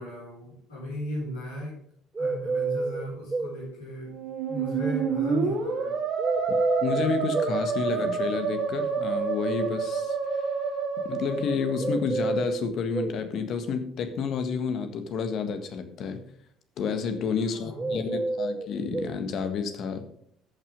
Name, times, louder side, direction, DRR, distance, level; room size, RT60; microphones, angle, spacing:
voice 1, 0.0-1.8 2.2-4.1 4.5-6.0 17.4-18.1, equal, 85° left, -9 dB, 4.5 m, -36 dB
sound 1, 2.2-3.6 6.2-7.6 11.8-13.2 17.8-19.2, right 3 dB, 20° right, 0.8 m, -29 dB
Musical instrument, 4.0-12.1, right 5 dB, 60° right, 3.2 m, -29 dB
voice 2, 6.8-10.4 11.1-16.2 16.8-20.0, left 5 dB, 55° left, 8 dB, 1.5 m, -30 dB
14.5 x 5.9 x 5.3 m, 0.66 s
figure-of-eight pair, 55°, 0 cm